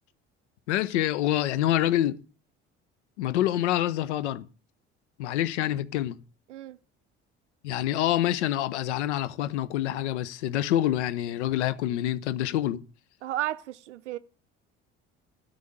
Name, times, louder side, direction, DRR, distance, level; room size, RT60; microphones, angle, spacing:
voice 1, 0.7-2.2 3.2-4.4 5.2-6.2 7.6-12.8, left 12 dB, 75° left, 0.8 m, -26 dB
voice 2, 13.2-14.2, right 14 dB, 85° right, 0.5 m, -33 dB
13.0 x 5.1 x 9.1 m
hypercardioid pair, 55°, 35 cm